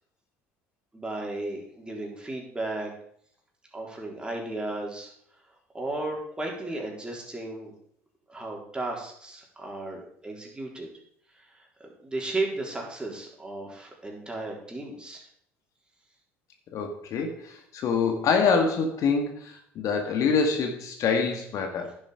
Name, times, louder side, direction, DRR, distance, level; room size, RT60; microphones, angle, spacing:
voice 1, 0.9-2.9 3.7-5.1 5.7-7.7 8.3-10.9 11.4-11.5 11.8-15.2, right 2 dB, 15° right, -1 dB, 3.9 m, -34 dB
voice 2, 16.7-22.0, left 5 dB, 55° left, 4 dB, 1.8 m, -26 dB
10.5 x 7.5 x 5.1 m, 0.66 s
hypercardioid pair, 70°, 7 cm